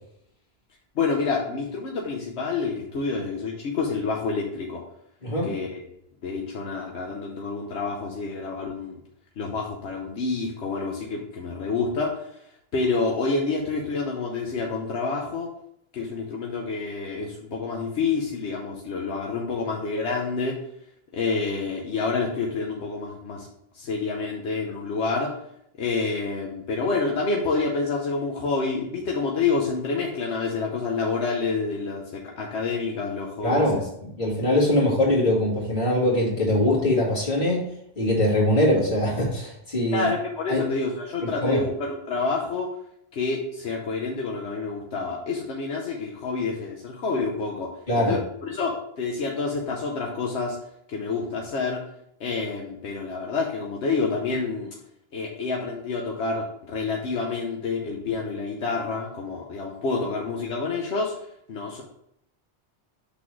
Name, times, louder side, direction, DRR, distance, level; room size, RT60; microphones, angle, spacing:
voice 1, 1.0-4.8 5.4-5.8 6.2-9.0 9.4-12.4 12.7-15.5 15.9-20.5 21.1-23.5 23.7-25.3 25.8-33.9 39.9-42.7 43.1-47.7 48.0-50.6 50.9-51.8 52.2-54.7 55.1-61.8, left 4 dB, 80° left, 0 dB, 1.1 m, -28 dB
voice 2, 33.4-33.8 34.2-37.6 38.0-40.1 40.5-40.6 41.4-41.6 47.9-48.1, left 1 dB, 45° left, -5 dB, 2.5 m, -22 dB
6.1 x 4.0 x 4.6 m, 0.74 s
omnidirectional pair, 1.1 m